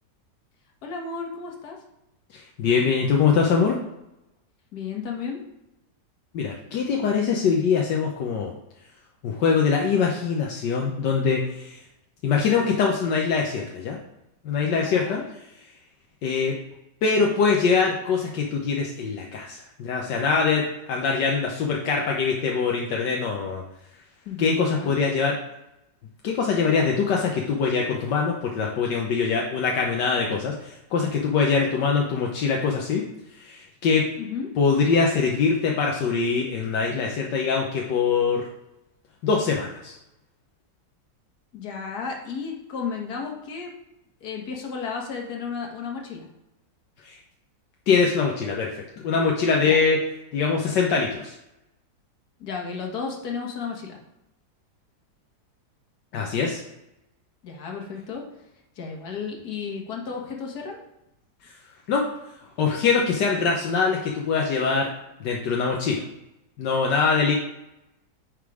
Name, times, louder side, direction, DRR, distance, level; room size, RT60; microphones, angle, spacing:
voice 1, 0.8-1.8 4.7-5.4 14.7-15.3 24.3-24.9 34.2-34.5 41.5-43.7 44.2-46.3 49.6-49.8 52.4-54.0 57.4-58.2 58.8-60.8, left 5 dB, 60° left, 1 dB, 1.8 m, -33 dB
voice 2, 2.3-3.8 6.3-8.5 9.2-11.8 12.2-14.0 14.4-15.2 16.2-16.5 17.0-23.6 24.4-25.4 26.2-33.0 33.3-34.0 34.6-38.4 39.2-39.9 47.0-47.2 47.9-50.0 50.3-51.3 56.1-56.6 61.4-61.5 61.9-62.0 62.6-64.9 65.2-66.0 66.6-67.3, left 5 dB, 80° left, 0 dB, 1.5 m, -23 dB
9.4 x 3.8 x 4.8 m, 0.89 s
omnidirectional pair, 1.9 m